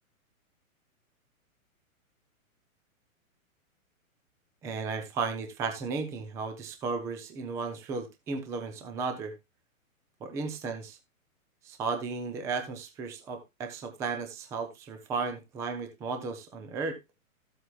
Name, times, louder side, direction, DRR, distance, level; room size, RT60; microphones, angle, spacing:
voice 1, 4.6-9.3 10.2-11.0 11.6-17.0, right 4 dB, 5° right, 6 dB, 0.5 m, -34 dB
14.0 x 7.9 x 2.3 m, 0.21 s
hypercardioid pair, 145°, 43 cm